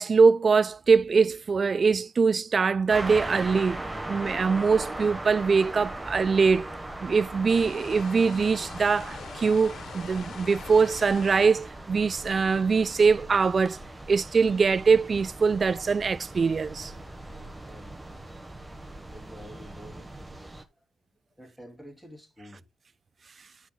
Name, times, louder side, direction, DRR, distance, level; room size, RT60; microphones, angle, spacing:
voice 1, 0.0-6.7 7.0-13.8 14.1-16.9, right 5 dB, 40° right, 0.3 m, -23 dB
sound 1, 2.9-20.6, right 1 dB, 10° right, 1.2 m, -39 dB
sound 2, 7.5-11.6, left 7 dB, 65° left, 0.6 m, -44 dB
voice 2, 17.6-18.0 19.1-20.7 21.4-22.7, equal, 5° left, 2.7 m, -48 dB
12.5 x 6.3 x 2.3 m
cardioid pair, 105°, 0 cm